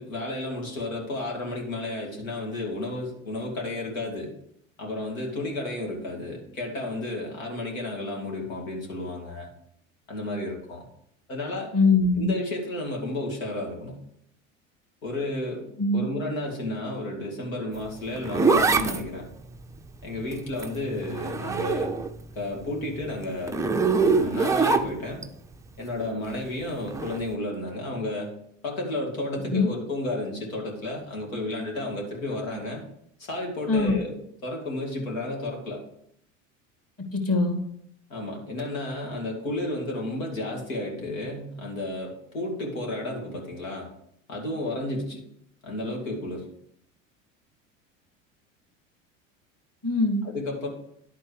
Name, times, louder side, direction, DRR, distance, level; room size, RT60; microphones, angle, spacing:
voice 1, 0.0-4.3 4.8-9.5 10.1-10.9 11.3-11.7 12.1-14.0 15.0-15.7 15.9-19.3 20.0-21.9 22.4-23.6 23.9-25.2 25.8-28.3 28.6-32.8 33.2-35.8 38.1-43.9 44.3-45.2 45.6-46.5 50.2-50.7, left 1 dB, 85° left, 0 dB, 2.4 m, -32 dB
voice 2, 11.7-12.3 15.8-16.0 29.5-29.7 33.7-33.9 37.1-37.6 49.8-50.2, left 3 dB, 35° left, 2 dB, 2.5 m, -22 dB
Zipper (clothing), 17.8-22.2 22.6-25.3 26.9-27.2, right 4 dB, 10° right, 0.4 m, -25 dB
10.5 x 4.4 x 5.0 m, 0.73 s
hypercardioid pair, 85°, 40 cm